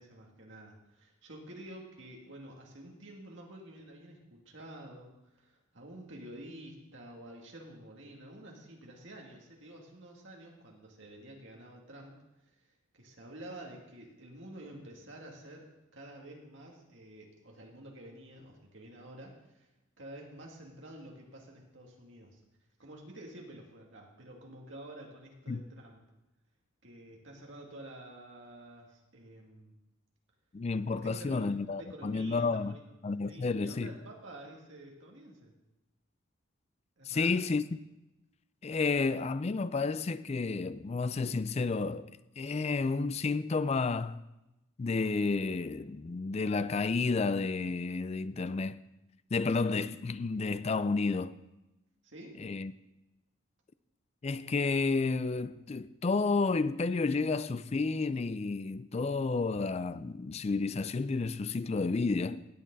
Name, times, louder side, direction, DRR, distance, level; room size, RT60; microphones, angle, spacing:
voice 1, 0.0-12.2 12.6-12.7 12.9-19.7 20.0-22.4 22.8-26.0 26.8-29.7 30.9-31.5 31.8-32.8 33.3-35.5 37.0-37.4 52.0-52.4, right 1 dB, 60° right, 2.3 m, -49 dB
voice 2, 30.5-32.7 33.0-33.9 37.1-37.6 38.6-44.2 44.8-48.8 49.3-51.4 52.4-52.7 54.2-62.4, left 4 dB, 30° left, 0.4 m, -31 dB
16.0 x 8.7 x 4.0 m
head